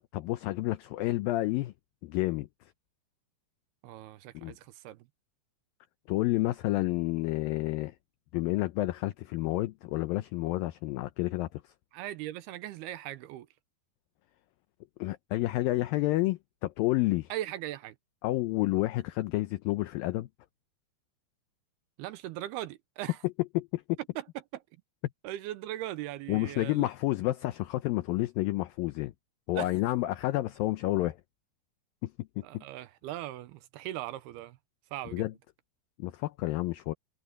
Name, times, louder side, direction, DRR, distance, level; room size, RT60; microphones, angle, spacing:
voice 1, 0.1-1.7 2.0-2.5 4.3-4.5 6.1-7.9 8.3-11.6 15.0-17.3 18.2-20.3 23.2-24.0 26.3-29.1 29.5-31.2 32.0-32.6 35.1-35.3 36.0-36.9, left 18 dB, 85° left, 2.0 m, -30 dB
voice 2, 3.8-5.1 11.9-13.5 17.3-18.0 22.0-23.2 24.2-24.3 24.5-24.6 25.2-26.9 29.5-29.7 32.4-34.6 34.9-35.3, right 14 dB, 80° right, 2.6 m, -39 dB
omnidirectional pair, 4.9 m